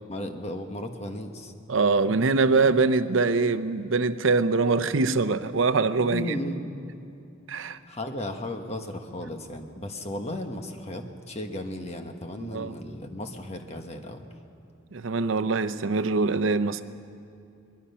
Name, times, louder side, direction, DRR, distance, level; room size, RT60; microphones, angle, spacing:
voice 1, 0.1-1.5 6.0-6.7 7.6-14.2, left 1 dB, 30° left, 1.4 m, -35 dB
voice 2, 1.7-6.4 7.5-7.8 12.4-12.7 14.9-16.8, right 3 dB, 70° right, 0.7 m, -23 dB
22.5 x 21.0 x 5.6 m
head